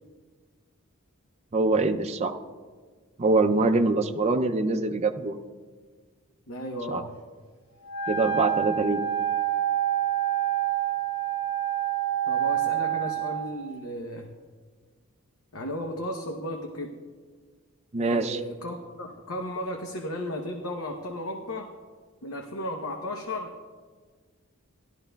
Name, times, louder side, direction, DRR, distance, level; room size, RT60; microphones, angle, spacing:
voice 1, 1.5-2.3 3.2-5.4 6.9-7.0 8.1-9.0 17.9-18.4, right 3 dB, 30° right, 6 dB, 0.4 m, -24 dB
voice 2, 6.5-7.1 12.3-14.3 15.5-16.9 18.0-21.7 22.2-23.5, left 1 dB, 80° left, 2 dB, 0.8 m, -34 dB
Wind instrument woodwind instrument, 7.8-13.4, right 11 dB, 30° left, 2.0 m, -27 dB
16.0 x 12.5 x 2.3 m, 1.5 s
head